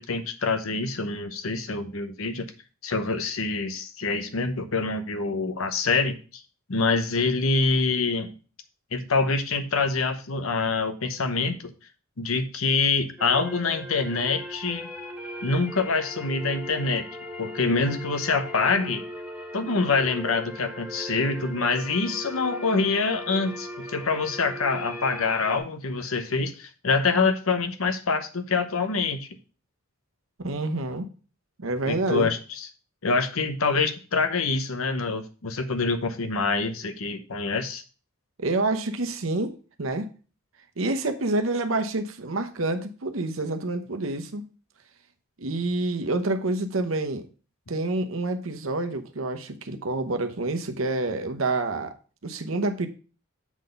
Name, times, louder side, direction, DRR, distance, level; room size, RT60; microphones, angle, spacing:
voice 1, 0.0-2.5 2.8-6.2 6.7-8.3 8.9-11.7 12.2-14.9 15.4-17.0 17.4-19.0 19.5-29.3 31.9-32.7 33.0-37.8, left 4 dB, 75° left, 8 dB, 0.9 m, -25 dB
sound 1, 13.2-25.6, equal, 10° right, 1.7 m, -38 dB
voice 2, 30.4-31.1 31.6-32.3 38.4-40.1 40.8-44.4 45.4-47.2 47.7-51.9 52.2-52.9, right 2 dB, 65° right, 7 dB, 0.9 m, -28 dB
7.3 x 4.1 x 5.2 m, 0.37 s
head